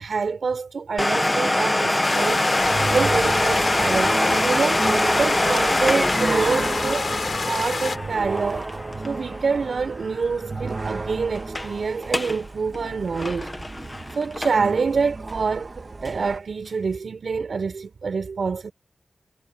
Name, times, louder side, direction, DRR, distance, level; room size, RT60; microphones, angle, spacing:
voice 1, 0.0-2.4 2.9-7.1 7.4-8.7 9.0-13.5 14.1-18.7, right 5 dB, 70° right, 4.7 m, -26 dB
Domestic sounds home sounds, 1.0-10.4 10.7-10.8 11.3-11.7 12.0-12.4 12.7-14.8 15.3-15.4 16.0-16.1, left 1 dB, 15° left, 1.5 m, -24 dB
sound 1, 2.0-8.0, left 4 dB, 55° left, 4.3 m, -27 dB
sound 2, 2.6-16.4, right 3 dB, 40° right, 2.0 m, -32 dB
wide cardioid pair, 110°, 0 cm